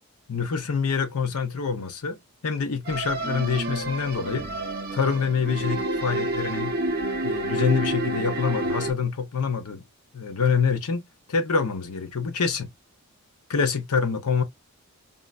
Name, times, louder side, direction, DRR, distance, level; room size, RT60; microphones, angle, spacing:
voice 1, 0.3-2.2 2.4-4.4 4.9-6.7 7.2-9.8 10.1-11.0 11.3-12.7 13.5-14.4, left 5 dB, 85° left, 0.7 m, -26 dB
sound 1, 2.9-8.9, right 2 dB, 40° right, 0.6 m, -29 dB
3.8 x 2.0 x 2.4 m
head